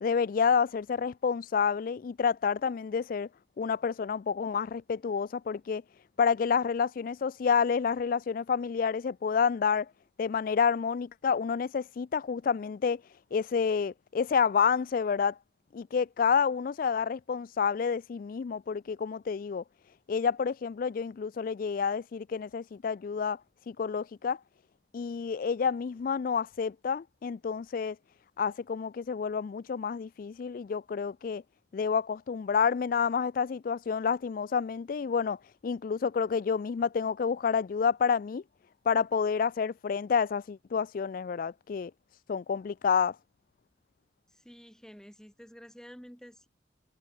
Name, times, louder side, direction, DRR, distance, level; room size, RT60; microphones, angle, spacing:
voice 1, 0.0-3.3 3.6-5.8 6.2-9.9 10.2-15.4 15.7-19.6 20.1-23.4 23.7-24.4 24.9-28.0 28.4-31.4 31.7-35.4 35.6-38.4 38.9-41.9 42.3-43.2, left 6 dB, 50° left, 0.3 m, -29 dB
voice 2, 44.3-46.5, equal, 5° left, 3.5 m, -50 dB
head